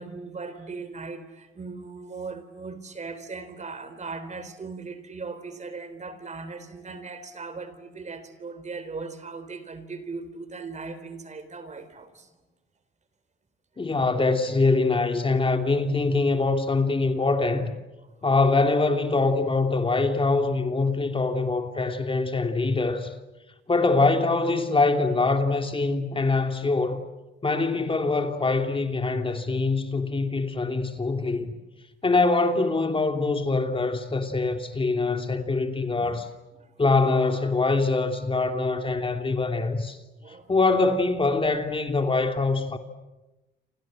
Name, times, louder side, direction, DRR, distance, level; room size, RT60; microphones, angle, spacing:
voice 1, 0.0-12.3 31.2-31.4 36.0-36.2 36.5-36.7 40.2-40.5, right 4 dB, 35° right, 3.7 m, -38 dB
voice 2, 13.8-17.7 18.2-23.1 23.7-27.0 27.4-31.5 32.0-36.3 36.8-40.0 40.5-42.8, left 3 dB, 25° left, 2.9 m, -24 dB
29.5 x 26.0 x 7.8 m
cardioid pair, 90°, 20 cm